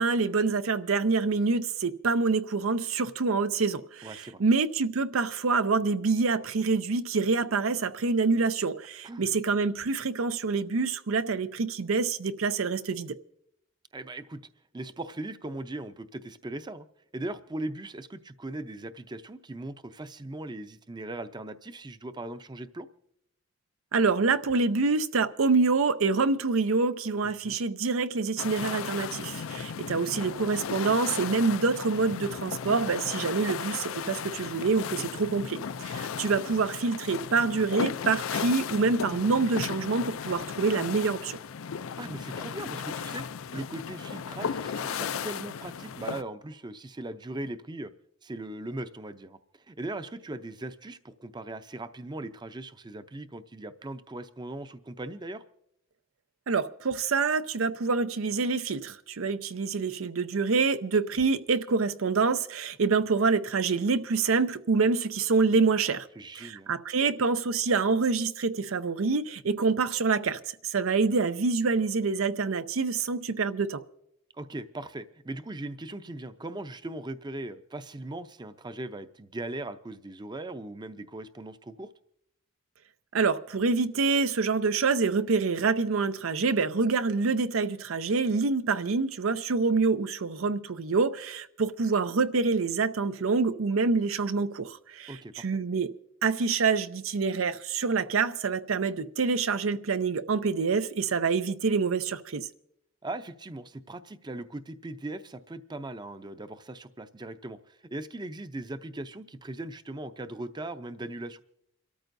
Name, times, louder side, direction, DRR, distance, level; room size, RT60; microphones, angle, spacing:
voice 1, 0.0-13.2 23.9-41.4 56.5-66.1 66.4-73.8 83.1-95.9 96.2-102.5, right 4 dB, 90° right, 0.6 m, -26 dB
voice 2, 4.0-4.4 9.0-9.3 13.9-14.4 14.7-16.9 17.1-22.9 27.4-27.6 42.0-43.2 43.5-47.9 48.2-49.4 49.7-55.4 66.2-66.8 74.3-81.9 95.1-95.5 103.0-111.4, right 2 dB, 20° right, 0.5 m, -39 dB
sound 1, 28.4-46.2, left 7 dB, 80° left, 0.4 m, -35 dB
28.5 x 13.5 x 2.6 m
head